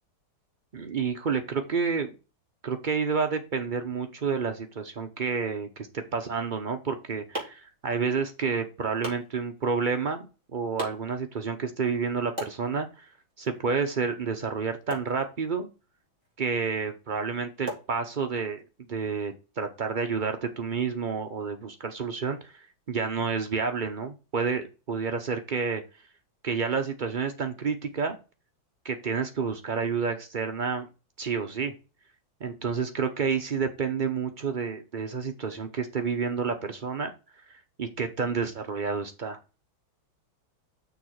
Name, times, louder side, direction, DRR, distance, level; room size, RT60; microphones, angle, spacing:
voice 1, 0.7-2.1 2.6-10.3 10.5-13.1 13.4-15.7 16.4-18.6 18.9-22.5 22.9-25.8 26.4-28.2 28.8-30.9 31.2-31.7 32.4-37.1 37.8-39.4, right 5 dB, 85° right, 6 dB, 0.4 m, -29 dB
sound 1, 6.7-18.6, right 1 dB, 15° right, 3.3 m, -44 dB
6.5 x 4.0 x 6.4 m, 0.30 s
omnidirectional pair, 2.1 m